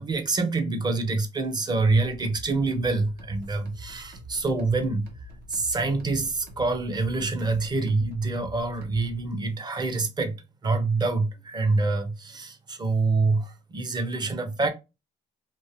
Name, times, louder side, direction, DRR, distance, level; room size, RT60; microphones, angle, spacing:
voice 1, 0.0-5.1 5.5-10.3 10.6-14.7, right 3 dB, 25° right, 0.7 m, -26 dB
sound 1, 1.8-9.3, equal, 65° right, 1.0 m, -45 dB
2.6 x 2.5 x 3.1 m
cardioid pair, 110°, 17 cm